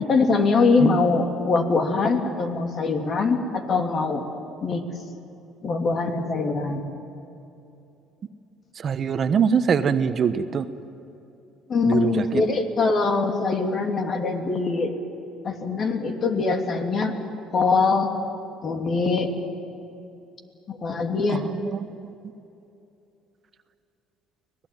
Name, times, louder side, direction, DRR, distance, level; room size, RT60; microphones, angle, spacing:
voice 1, 0.0-4.2 4.6-4.8 5.6-6.8 11.7-14.9 15.4-17.1 17.5-18.1 18.6-19.3 20.7-21.4, left 4 dB, 45° left, 4 dB, 2.9 m, -23 dB
voice 2, 8.8-10.6 11.8-12.3 21.3-22.1, right 6 dB, 45° right, 10 dB, 1.1 m, -23 dB
25.0 x 18.5 x 9.4 m, 2.8 s
supercardioid pair, 85°, 0 cm